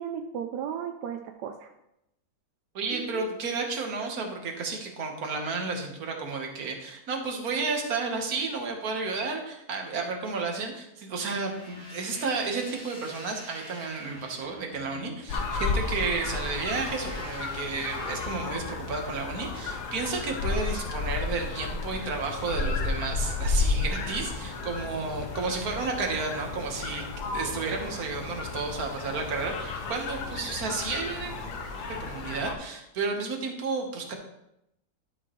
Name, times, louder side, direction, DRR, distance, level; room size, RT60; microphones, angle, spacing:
voice 1, 0.0-1.7 2.9-3.2, right 8 dB, 85° right, 5 dB, 1.2 m, -35 dB
voice 2, 2.8-27.0 27.3-31.5 32.0-34.1, right 4 dB, 65° right, 2 dB, 1.7 m, -32 dB
sound 1, 11.3-19.0, equal, 45° left, 2.6 m, -46 dB
sound 2, 15.3-32.5, left 4 dB, 90° left, 1.5 m, -33 dB
12.0 x 6.2 x 3.1 m, 0.84 s
omnidirectional pair, 1.7 m